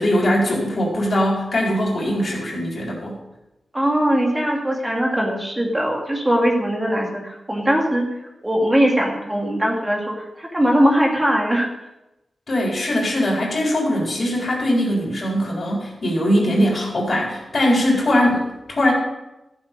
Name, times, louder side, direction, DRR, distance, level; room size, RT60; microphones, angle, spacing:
voice 1, 0.0-3.2 12.5-18.9, equal, 50° left, -4 dB, 4.2 m, -21 dB
voice 2, 3.7-8.1 8.4-10.0 10.4-11.7, equal, 15° right, 0 dB, 2.2 m, -20 dB
14.0 x 8.1 x 5.3 m, 0.94 s
wide cardioid pair, 120°, 0 cm